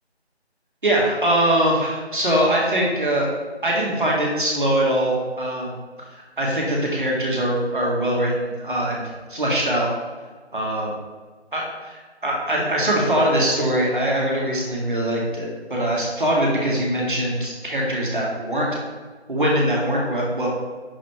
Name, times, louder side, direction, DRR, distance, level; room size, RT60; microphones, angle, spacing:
voice 1, 0.8-3.3 3.6-5.7 6.4-9.0 9.3-9.9 10.5-10.9 11.5-18.8 19.3-20.5, right 1 dB, 50° right, -3 dB, 1.7 m, -22 dB
10.5 x 4.0 x 3.3 m, 1.5 s
figure-of-eight pair, 175°, 34 cm